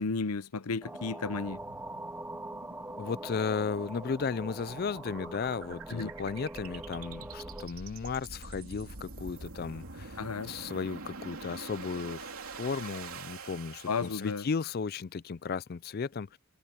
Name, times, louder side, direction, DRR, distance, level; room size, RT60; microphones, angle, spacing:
voice 1, 0.0-1.6 5.9-6.1 10.2-10.5 13.9-14.5, left 4 dB, 85° left, 0.7 m, -33 dB
sound 1, 0.8-7.7, right 1 dB, 10° right, 0.5 m, -43 dB
sound 2, 1.2-14.6, right 3 dB, 70° right, 3.0 m, -46 dB
voice 2, 3.0-10.2 10.4-16.4, left 5 dB, 45° left, 0.4 m, -35 dB
head